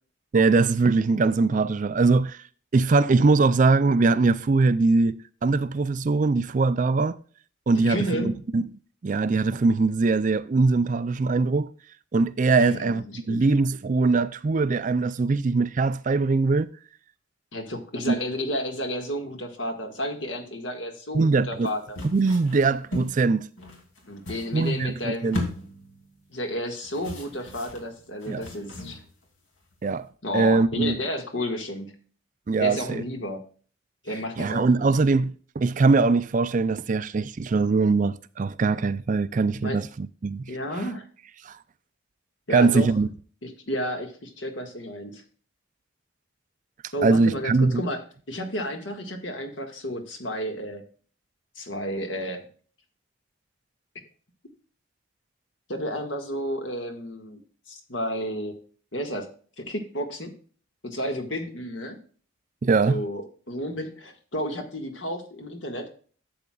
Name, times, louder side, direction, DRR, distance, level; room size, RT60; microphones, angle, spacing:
voice 1, 0.3-2.4 2.7-7.2 7.7-8.6 9.0-11.7 12.1-16.7 18.1-18.2 21.1-21.7 22.0-23.5 24.5-25.4 28.3-28.4 29.8-30.1 30.3-31.0 32.5-33.0 34.4-40.5 41.4-41.6 42.5-43.1 47.0-47.8 62.6-63.0, right 3 dB, 40° right, 0.4 m, -22 dB
voice 2, 7.8-8.4 12.6-13.5 17.5-22.0 24.1-25.4 26.3-29.0 30.2-32.0 32.6-33.4 34.0-34.9 39.6-39.8 40.5-41.1 42.5-42.9 43.4-45.2 46.9-48.0 48.3-50.8 51.6-52.4 55.7-57.4 57.7-58.6 58.9-59.3 59.6-60.3 60.8-62.0 62.8-65.9, equal, 65° left, 1.8 m, -32 dB
sound 1, 21.6-23.2 23.6-24.9 25.2-26.2 26.8-29.2 29.6-30.0, left 1 dB, 80° left, 2.7 m, -37 dB
12.0 x 7.9 x 2.4 m
head